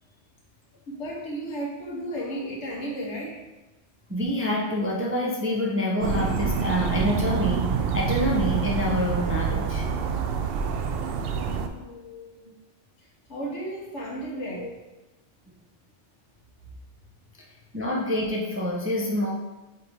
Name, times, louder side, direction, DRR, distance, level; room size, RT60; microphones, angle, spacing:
voice 1, 0.9-3.4 11.7-12.5 13.0-14.7, right 1 dB, 70° left, -3 dB, 1.6 m, -34 dB
voice 2, 4.1-9.9 14.5-14.7 17.7-19.3, left 1 dB, 15° right, -3 dB, 0.5 m, -27 dB
sound 1, 6.0-11.7, right 6 dB, 65° right, 0.7 m, -26 dB
5.3 x 4.0 x 4.6 m, 1.1 s
omnidirectional pair, 1.2 m